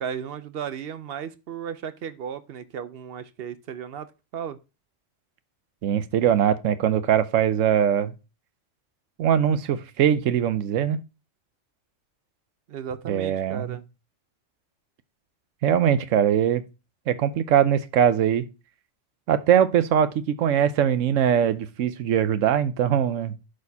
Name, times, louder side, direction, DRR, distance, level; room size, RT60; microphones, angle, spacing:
voice 1, 0.0-4.1 4.3-4.6 12.7-13.8, right 8 dB, 60° right, 0.8 m, -35 dB
voice 2, 5.8-8.1 9.2-11.0 13.1-13.8 15.6-16.6 17.1-18.4 19.3-23.3, right 9 dB, 85° right, 1.1 m, -21 dB
11.5 x 4.2 x 2.7 m
omnidirectional pair, 1.3 m